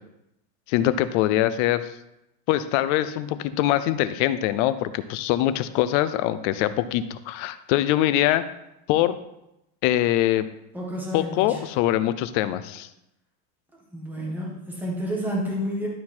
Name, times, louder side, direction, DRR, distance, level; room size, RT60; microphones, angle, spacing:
voice 1, 0.7-1.9 2.5-8.4 8.9-9.2 9.8-10.5 11.1-12.9, left 13 dB, 50° left, 13 dB, 0.5 m, -23 dB
voice 2, 10.7-11.6 13.9-15.9, equal, 5° right, -3 dB, 1.4 m, -30 dB
12.0 x 4.3 x 4.3 m, 0.87 s
cardioid pair, 170°, 48 cm